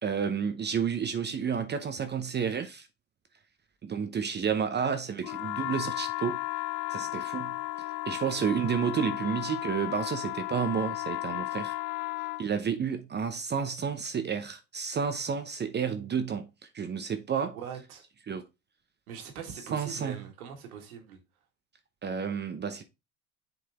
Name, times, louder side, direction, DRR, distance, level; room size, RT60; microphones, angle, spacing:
voice 1, 0.0-2.9 3.8-6.4 6.9-7.6 8.1-11.7 12.4-17.6 18.3-18.4 19.7-20.2 22.0-22.8, right 7 dB, 25° right, 0.7 m, -31 dB
sound 1, 5.2-12.4, left 18 dB, 50° left, 0.6 m, -34 dB
voice 2, 17.5-18.0 19.1-21.2, right 7 dB, 80° right, 1.9 m, -42 dB
7.4 x 4.0 x 3.6 m
hypercardioid pair, 85°, 42 cm